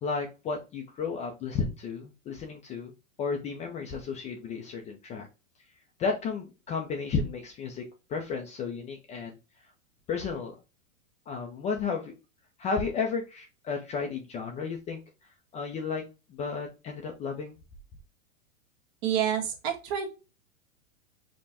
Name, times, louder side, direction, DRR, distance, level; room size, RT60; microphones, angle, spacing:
voice 1, 0.0-2.9 3.2-5.3 6.0-7.8 8.1-9.4 10.1-10.5 11.3-12.1 12.6-15.0 15.5-16.0 16.3-17.6, left 5 dB, 20° left, 2 dB, 0.4 m, -33 dB
voice 2, 19.0-20.1, right 9 dB, 50° right, 3 dB, 1.3 m, -28 dB
5.3 x 2.2 x 2.8 m, 0.29 s
hypercardioid pair, 115°, 40 cm